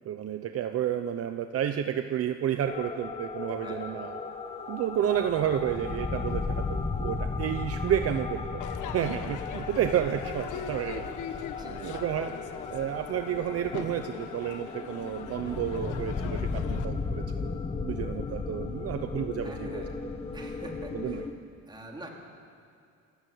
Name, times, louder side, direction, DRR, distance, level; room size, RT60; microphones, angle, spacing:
voice 1, 0.0-4.2 4.7-6.6 7.0-8.6 8.9-12.4 12.7-17.5 17.8-19.8 20.9-21.2, right 10 dB, 50° right, 8 dB, 0.8 m, -31 dB
sound 1, 2.7-21.3, left 4 dB, 20° left, 1.2 m, -35 dB
voice 2, 3.5-4.0 11.6-11.8 15.4-15.7 19.4-20.0 20.3-21.3 21.7-22.1, right 1 dB, 15° right, 0 dB, 3.0 m, -45 dB
Crowd / Fireworks, 8.6-16.9, left 8 dB, 85° left, 1.4 m, -41 dB
28.5 x 14.5 x 8.6 m, 2.4 s
cardioid pair, 170°, 30 cm